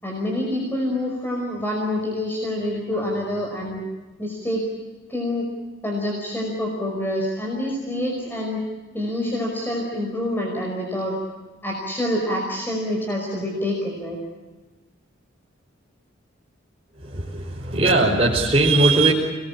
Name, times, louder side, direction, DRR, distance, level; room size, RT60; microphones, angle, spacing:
voice 1, 0.0-3.8 4.2-4.6 5.1-5.4 5.8-8.6 8.9-11.2 11.6-14.2, left 1 dB, 10° left, -1 dB, 5.3 m, -26 dB
voice 2, 17.0-19.1, right 2 dB, 30° right, -5 dB, 4.8 m, -19 dB
30.0 x 21.5 x 8.7 m, 1.2 s
head